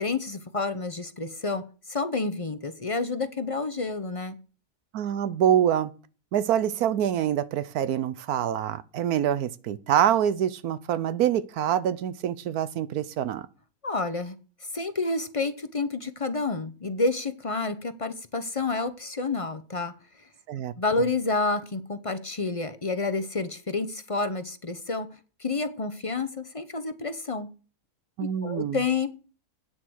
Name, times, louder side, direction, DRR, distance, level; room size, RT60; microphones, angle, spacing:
voice 1, 0.0-4.4 13.8-14.4 14.7-19.9 20.8-25.1 25.4-27.5 28.2-29.1, left 3 dB, 35° left, 0.6 m, -29 dB
voice 2, 4.9-5.9 6.3-13.5 20.5-20.7 28.2-28.8, right 10 dB, 75° right, 1.2 m, -25 dB
9.3 x 7.7 x 6.3 m
omnidirectional pair, 1.6 m